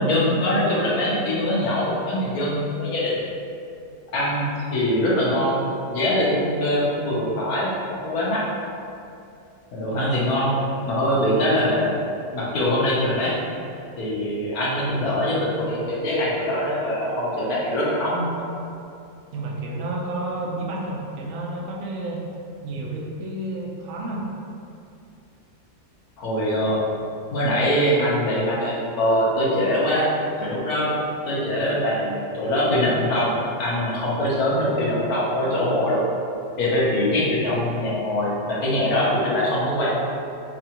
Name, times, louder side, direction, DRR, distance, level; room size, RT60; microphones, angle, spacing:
voice 1, 0.0-3.1 4.1-8.4 9.7-11.9 12.3-13.3 14.0-18.3 26.2-26.8 27.3-30.1 30.4-30.9 31.2-33.3 33.6-36.0 36.6-39.9, left 1 dB, 65° left, -6 dB, 1.2 m, -23 dB
voice 2, 9.9-10.3 19.3-22.2 22.6-24.2, right 2 dB, 65° right, -2 dB, 0.8 m, -30 dB
5.0 x 2.4 x 2.8 m, 2.6 s
omnidirectional pair, 1.8 m